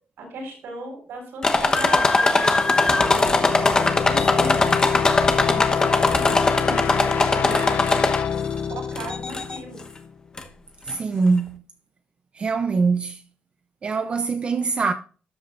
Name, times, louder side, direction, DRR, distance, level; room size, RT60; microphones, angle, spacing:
voice 1, 0.2-7.9 8.7-9.8, right 2 dB, 80° right, 6.9 m, -36 dB
sound 1, 1.4-8.5 9.0-9.6 10.4-10.5 10.9-11.0, left 3 dB, 20° left, 1.0 m, -20 dB
sound 2, 2.3-10.1, left 7 dB, 55° left, 0.8 m, -26 dB
voice 2, 10.8-11.6 12.3-13.2 13.8-14.9, right 4 dB, 30° right, 0.6 m, -23 dB
13.0 x 10.5 x 2.6 m
wide cardioid pair, 170°, 4 cm